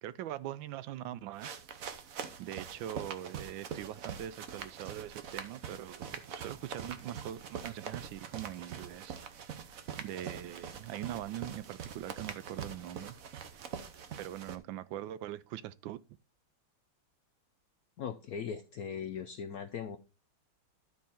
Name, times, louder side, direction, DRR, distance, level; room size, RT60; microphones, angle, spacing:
voice 1, 0.0-1.6 2.4-9.6 10.0-13.2 14.2-16.0, right 12 dB, 80° right, 1.3 m, -42 dB
sound 1, 1.4-14.6, right 7 dB, 55° right, 1.1 m, -44 dB
voice 2, 18.0-20.0, left 7 dB, 75° left, 0.8 m, -39 dB
12.0 x 4.6 x 4.3 m
omnidirectional pair, 2.1 m